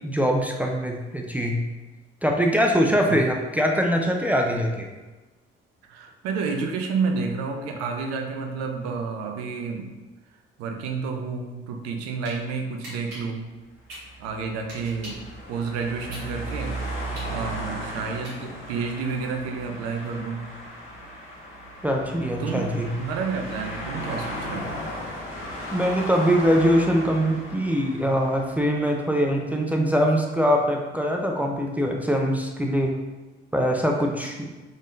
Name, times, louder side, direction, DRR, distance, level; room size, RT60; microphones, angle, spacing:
voice 1, 0.0-1.6 2.2-4.9 21.8-22.9 25.7-32.9 33.5-34.5, equal, 5° right, 1 dB, 0.5 m, -23 dB
voice 2, 5.9-9.9 10.6-13.5 14.2-16.8 17.3-20.5 22.4-22.6 23.0-24.7, right 5 dB, 55° right, 3 dB, 0.7 m, -30 dB
sound 1, 12.3-12.4 12.8-15.3 15.7-18.8, equal, 80° right, 1.2 m, -42 dB
sound 2, 13.9-29.3, equal, 45° left, 1.4 m, -36 dB
5.1 x 3.7 x 2.5 m, 1.2 s
figure-of-eight pair, 50°, 30 cm